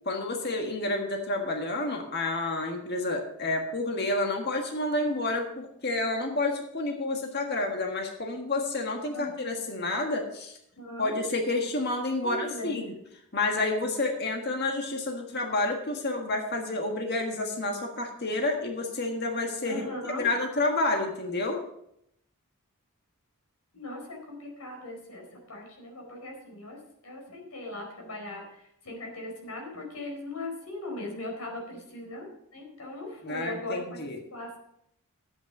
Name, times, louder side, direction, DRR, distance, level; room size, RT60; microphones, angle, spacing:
voice 1, 0.0-10.6 11.0-12.9 13.3-19.8 20.2-21.6 33.2-34.2, left 2 dB, 45° left, 3 dB, 1.6 m, -29 dB
voice 2, 10.8-11.2 12.2-12.8 19.6-20.3 23.7-26.8 27.0-34.0 34.3-34.6, left 1 dB, 80° left, 1 dB, 4.3 m, -39 dB
11.5 x 8.6 x 5.4 m, 0.74 s
head